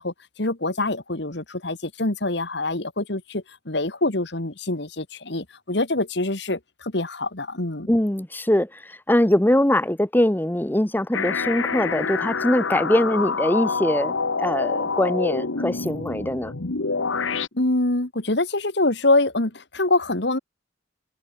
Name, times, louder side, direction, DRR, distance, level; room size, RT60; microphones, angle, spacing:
voice 1, 0.0-7.9 17.5-20.4, left 2 dB, 60° left, 2.1 m, -25 dB
voice 2, 7.9-14.1 14.4-16.5, left 1 dB, 10° left, 0.8 m, -22 dB
sound 1, 11.1-17.5, left 4 dB, 85° left, 1.3 m, -27 dB
open air
head